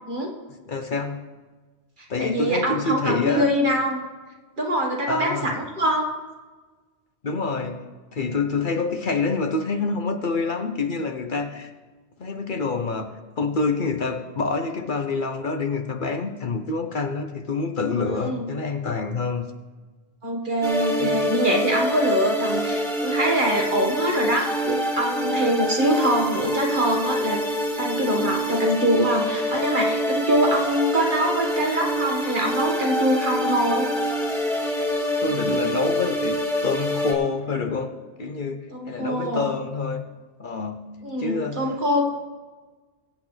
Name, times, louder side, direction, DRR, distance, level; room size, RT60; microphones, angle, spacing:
voice 1, 0.7-1.2 2.1-3.5 5.1-5.5 7.2-11.7 12.2-13.1 13.4-19.5 21.0-21.3 35.2-37.9 38.2-40.1 40.4-41.7, left 4 dB, 50° left, 6 dB, 0.9 m, -27 dB
voice 2, 2.2-4.0 4.6-6.1 18.2-18.5 20.2-27.4 27.8-33.9 38.7-39.5 41.0-42.1, equal, 50° right, 0 dB, 1.9 m, -24 dB
sound 1, 20.6-37.1, equal, 5° left, 1.8 m, -26 dB
22.5 x 8.4 x 3.3 m, 1.3 s
omnidirectional pair, 1.1 m